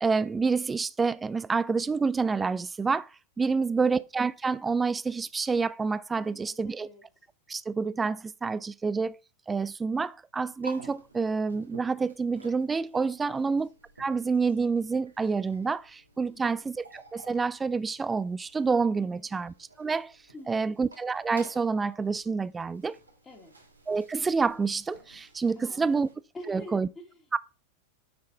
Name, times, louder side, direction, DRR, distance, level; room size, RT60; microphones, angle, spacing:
voice 1, 0.0-3.1 3.4-6.9 7.5-9.1 9.5-13.7 14.0-20.1 20.5-23.0 23.9-26.1 26.5-26.9 27.3-27.4, right 4 dB, 15° right, 0.4 m, -28 dB
voice 2, 3.5-3.9 6.2-7.0 13.3-13.6 16.3-16.6 19.0-19.3 20.3-20.7 23.2-23.5 25.6-25.9 26.3-27.4, left 1 dB, 15° left, 1.8 m, -47 dB
sound 1, 10.4-26.2, right 2 dB, 80° right, 1.5 m, -53 dB
9.5 x 5.7 x 2.8 m
figure-of-eight pair, 90°, 0 cm